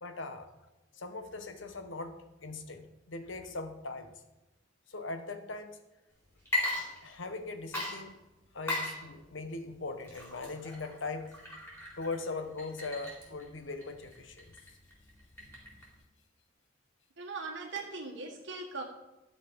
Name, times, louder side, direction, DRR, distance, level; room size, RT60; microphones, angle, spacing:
voice 1, 0.0-0.5 0.9-2.2 2.4-4.1 4.9-5.8 7.0-8.1 8.5-11.3 12.0-14.4, left 3 dB, 80° left, 8 dB, 1.2 m, -40 dB
Water / Liquid, 6.4-7.4 7.7-16.0, left 1 dB, 15° left, 3.9 m, -38 dB
voice 2, 17.2-18.8, right 3 dB, 70° right, 1 dB, 1.5 m, -39 dB
11.5 x 6.7 x 5.2 m, 1.0 s
head